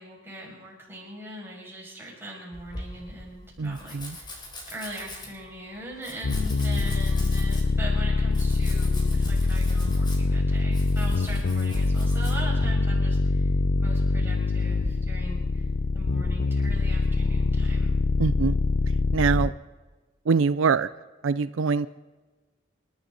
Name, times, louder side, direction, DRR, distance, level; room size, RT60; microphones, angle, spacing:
voice 1, 0.0-4.4 4.7-13.5 13.8-15.7 15.9-17.9, right 1 dB, 10° right, -4 dB, 6.3 m, -40 dB
Domestic sounds home sounds, 2.5-12.7, left 1 dB, 25° left, 3.6 m, -43 dB
voice 2, 3.6-4.2 18.2-18.6 19.1-19.5 20.3-20.9 21.2-21.9, right 5 dB, 80° right, 15 dB, 0.5 m, -24 dB
sound 1, 6.2-19.5, left 3 dB, 80° left, 0.7 m, -24 dB
27.5 x 12.0 x 4.0 m, 1.3 s
head